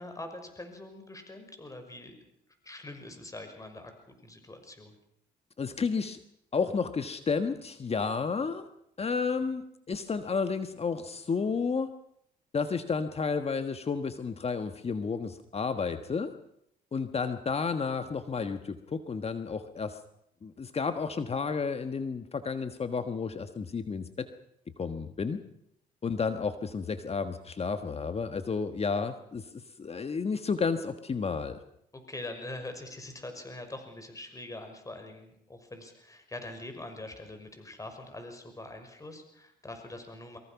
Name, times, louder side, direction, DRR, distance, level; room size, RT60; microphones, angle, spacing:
voice 1, 0.0-2.1 2.6-3.9 4.2-4.9 31.9-40.4, left 2 dB, 20° left, 6 dB, 6.1 m, -43 dB
voice 2, 5.6-6.2 6.5-8.7 9.0-11.9 12.5-16.3 16.9-20.0 20.4-24.3 24.8-25.4 26.0-29.5 29.8-31.6, left 5 dB, 35° left, 9 dB, 1.5 m, -31 dB
23.5 x 23.0 x 6.0 m, 0.73 s
supercardioid pair, 75°, 18 cm